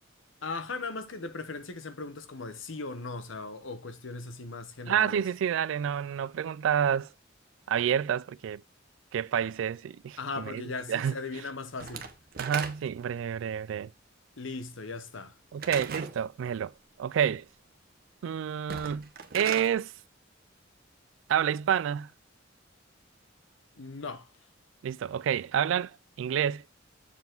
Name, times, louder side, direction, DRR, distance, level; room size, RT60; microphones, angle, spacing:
voice 1, 0.4-5.2 10.2-12.1 14.4-15.3 23.7-24.3, left 3 dB, 80° left, 1.1 m, -38 dB
voice 2, 4.9-7.1 7.7-8.6 9.1-10.6 10.9-11.1 12.4-13.9 15.5-16.7 17.0-17.4 18.2-19.1 19.3-19.9 21.3-22.1 24.8-25.9 26.2-26.6, right 8 dB, 75° right, 0.3 m, -28 dB
Slam / Wood, 11.8-13.1 15.6-16.2 18.6-19.7, right 6 dB, 50° right, 1.0 m, -37 dB
7.3 x 4.7 x 3.7 m
head